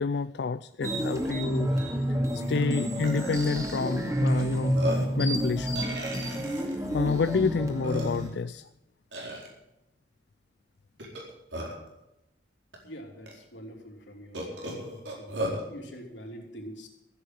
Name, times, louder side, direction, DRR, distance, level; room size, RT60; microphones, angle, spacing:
voice 1, 0.0-1.7 2.3-5.8 6.9-8.7, left 4 dB, 70° left, 13 dB, 0.4 m, -29 dB
sound 1, 0.8-8.3, equal, 20° right, 2.2 m, -29 dB
Burping eructation, 1.3-1.4 1.7-1.9 2.6-2.7 3.0-3.7 4.4-4.5 4.7-5.2 5.8-6.8 7.4-7.5 7.8-8.4 9.1-9.5 11.0-11.9 12.7-12.8 13.3-13.4 14.3-15.6, equal, 80° right, 4.3 m, -35 dB
voice 2, 12.8-14.7 15.1-16.9, equal, 90° left, 1 dB, 3.5 m, -45 dB
14.5 x 8.5 x 7.8 m, 0.89 s
head